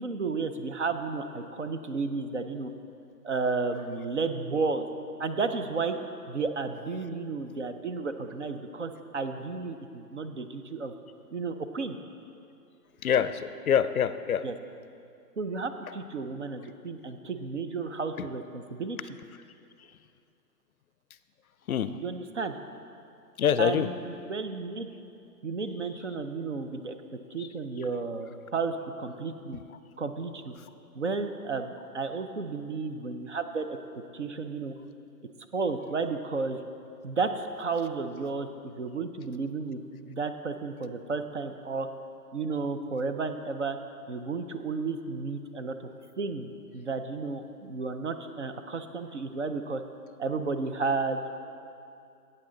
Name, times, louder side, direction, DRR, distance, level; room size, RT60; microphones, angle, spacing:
voice 1, 0.0-2.7 3.2-4.9 5.2-6.0 6.3-10.9 11.3-12.0 14.4-14.5 15.4-19.0 22.0-22.6 23.6-24.9 25.4-27.0 27.3-29.6 30.0-30.5 30.9-33.8 34.1-34.8 35.5-36.6 37.0-41.9 42.3-43.8 44.1-45.8 46.2-49.8 50.2-51.3, right 4 dB, 50° right, 8 dB, 0.6 m, -32 dB
voice 2, 13.0-14.5 18.2-18.3 19.8-19.9 21.7-22.0 23.4-23.9 27.4-27.5, left 8 dB, 60° left, 13 dB, 0.5 m, -26 dB
14.5 x 8.7 x 3.8 m, 2.5 s
hypercardioid pair, 175°, 49 cm